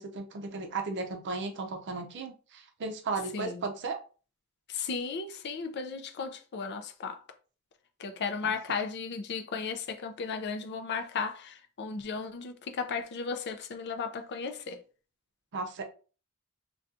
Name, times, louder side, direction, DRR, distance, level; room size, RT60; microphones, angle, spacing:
voice 1, 0.0-4.0 8.4-8.5 15.5-15.8, right 3 dB, 55° right, 0.5 m, -35 dB
voice 2, 4.7-7.2 8.0-14.8, left 5 dB, 50° left, 0.4 m, -35 dB
2.6 x 2.3 x 3.5 m
head